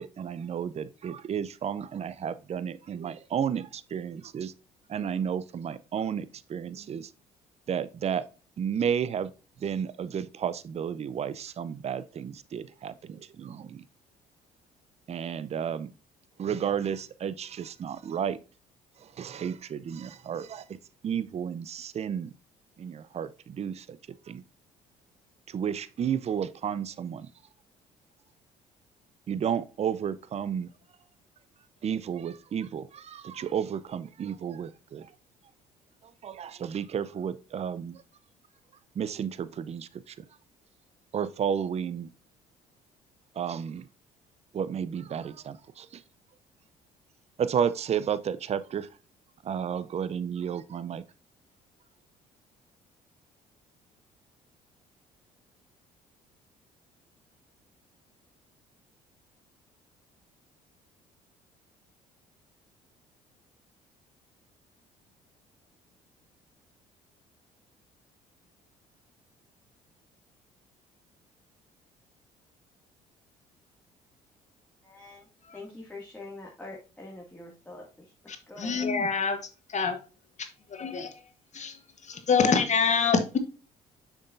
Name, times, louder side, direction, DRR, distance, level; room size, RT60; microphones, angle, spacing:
voice 1, 0.0-4.5 4.9-7.1 7.7-8.2 8.6-9.3 9.6-13.8 15.1-15.9 16.4-18.4 19.0-20.7 21.0-22.3 22.8-24.0 24.3-24.4 25.5-27.3 29.3-30.7 31.8-35.1 36.2-38.0 39.0-40.2 41.1-42.1 43.4-43.9 44.5-46.0 47.4-48.9 49.4-51.0, right 8 dB, 40° right, 0.5 m, -32 dB
voice 2, 74.8-75.3 75.5-78.1 78.5-78.9, left 2 dB, 10° left, 2.1 m, -44 dB
voice 3, 78.3-79.4 79.7-80.0 80.7-81.1 81.5-81.8 82.0-83.4, left 5 dB, 45° left, 1.2 m, -26 dB
6.5 x 6.0 x 2.6 m
hypercardioid pair, 60°, 17 cm